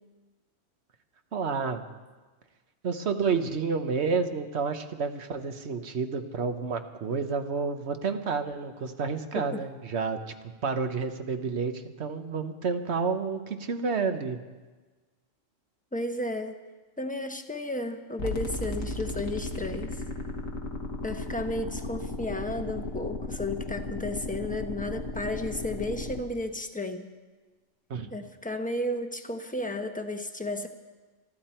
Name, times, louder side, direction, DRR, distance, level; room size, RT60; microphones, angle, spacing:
voice 1, 1.3-1.8 2.8-10.2 10.6-14.4 27.9-28.1, right 5 dB, 60° right, 7 dB, 1.3 m, -30 dB
voice 2, 15.9-16.6 17.0-20.0 21.0-27.1 28.1-30.7, left 1 dB, 5° left, 6 dB, 0.9 m, -33 dB
sound 1, 18.2-26.2, left 2 dB, 85° left, 1.9 m, -35 dB
23.0 x 13.5 x 4.5 m, 1.3 s
omnidirectional pair, 1.3 m